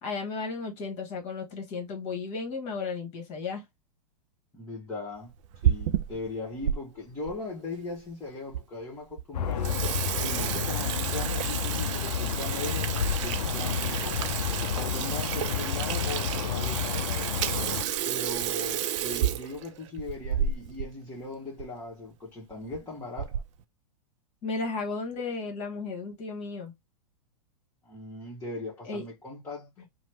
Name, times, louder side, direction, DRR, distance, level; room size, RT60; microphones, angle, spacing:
voice 1, 0.0-3.6 24.4-26.7 28.9-29.0, left 4 dB, 35° left, 1.3 m, -34 dB
voice 2, 4.5-5.3 5.6-9.8 10.2-14.4 14.7-17.3 18.0-23.4 27.8-29.7, left 2 dB, 15° left, 1.1 m, -39 dB
Water tap faucet / Sink (filling or washing), 5.3-6.8 7.3-7.4 8.1-8.2 8.5-8.6 9.0-9.2 9.5-20.9 21.2-21.3 21.6-21.7 22.5-22.8 23.2-23.6, right 10 dB, 55° right, 0.4 m, -31 dB
sound 1, 9.3-17.8, left 8 dB, 85° left, 0.4 m, -30 dB
2.9 x 2.1 x 3.3 m
hypercardioid pair, 120°, 20 cm